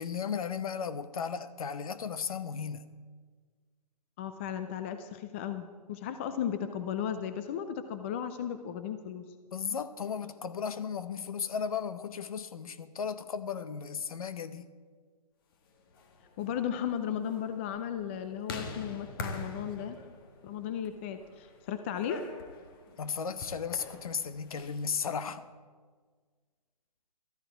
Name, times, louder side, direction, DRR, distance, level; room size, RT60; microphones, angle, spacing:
voice 1, 0.0-2.9 9.5-14.6 23.0-25.5, left 6 dB, 60° left, 12 dB, 1.0 m, -35 dB
voice 2, 4.2-9.3 16.4-20.0 20.4-22.2, left 9 dB, 20° left, 9 dB, 0.4 m, -35 dB
sound 1, 15.8-24.9, left 3 dB, 35° left, 1.5 m, -45 dB
14.0 x 13.5 x 4.6 m, 1.6 s
hypercardioid pair, 150°, 21 cm